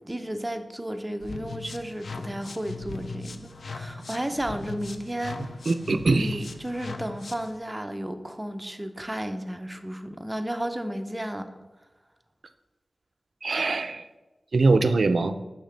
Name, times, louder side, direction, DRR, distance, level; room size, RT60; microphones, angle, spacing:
voice 1, 0.0-5.5 6.1-11.5, right 1 dB, 15° right, 6 dB, 0.5 m, -33 dB
sound 1, 1.2-7.6, left 3 dB, 75° left, 0.4 m, -39 dB
voice 2, 5.7-6.4 13.4-14.0 14.5-15.3, right 3 dB, 70° right, 10 dB, 0.4 m, -22 dB
6.4 x 5.8 x 3.3 m, 1.1 s
wide cardioid pair, 90°, 0 cm